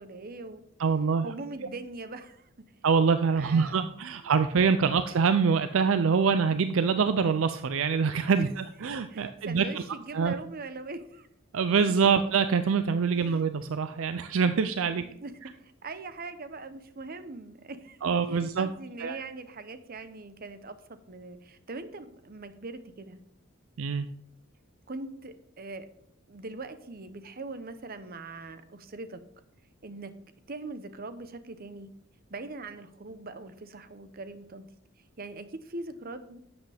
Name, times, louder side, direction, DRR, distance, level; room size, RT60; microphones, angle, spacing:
voice 1, 0.0-0.6 1.2-2.5 3.3-3.8 4.2-4.3 8.4-8.5 9.1-11.3 13.1-13.4 14.9-23.2 24.9-25.9 26.3-29.2 29.8-30.1 30.5-31.9 32.3-34.7 35.2-36.4, right 3 dB, 45° right, 11 dB, 0.8 m, -41 dB
voice 2, 0.8-1.3 2.8-9.6 10.1-10.4 11.5-15.0 18.0-18.7 19.0-19.2 23.8-24.1, right 5 dB, 65° right, 10 dB, 0.4 m, -25 dB
11.5 x 8.0 x 3.4 m, 0.72 s
head